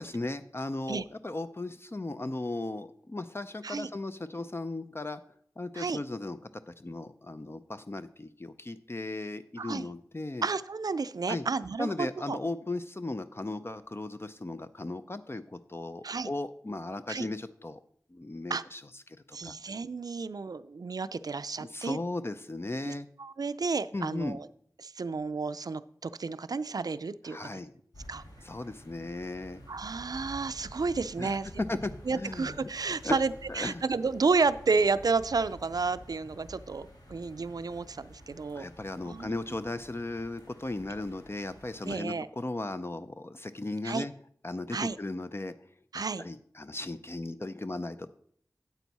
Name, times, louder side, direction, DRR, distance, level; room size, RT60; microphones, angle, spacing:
voice 1, 0.0-5.2 5.6-6.4 6.7-10.5 11.3-11.4 11.8-17.8 18.1-18.8 19.1-19.5 21.6-23.1 23.9-24.4 27.2-27.7 28.4-29.6 31.2-31.3 31.7-32.7 33.0-33.2 33.5-33.8 38.5-44.1 44.4-45.5 46.2-48.1, left 2 dB, 35° left, 10 dB, 0.5 m, -36 dB
voice 2, 9.6-9.9 10.4-12.4 16.0-16.3 17.1-17.3 18.5-18.6 19.3-22.0 22.8-22.9 23.2-24.5 24.8-27.5 28.1-28.2 29.7-31.6 32.1-38.7 39.1-39.3 41.8-42.3 43.8-44.1 44.7-45.0 45.9-46.3, right 4 dB, 75° right, 14 dB, 0.4 m, -31 dB
sound 1, 27.9-42.0, equal, 80° left, 2.0 m, -50 dB
9.1 x 8.1 x 4.1 m, 0.63 s
wide cardioid pair, 45°, 7 cm